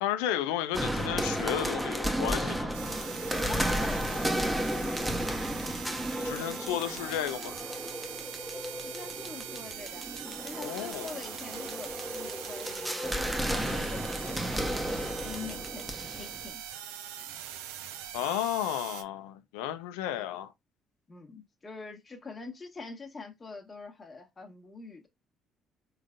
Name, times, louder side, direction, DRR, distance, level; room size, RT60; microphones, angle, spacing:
voice 1, 0.0-2.7 6.2-7.6 10.6-11.1 18.1-20.5, left 11 dB, 90° left, 0.5 m, -33 dB
sound 1, 0.7-16.5, equal, 5° right, 0.8 m, -33 dB
sound 2, 2.7-19.0, right 10 dB, 90° right, 0.5 m, -42 dB
voice 2, 3.3-5.2 8.8-13.0 13.4-16.6 20.1-20.3 21.1-25.1, left 4 dB, 30° left, 1.1 m, -45 dB
3.8 x 3.3 x 2.5 m
supercardioid pair, 65°, 0 cm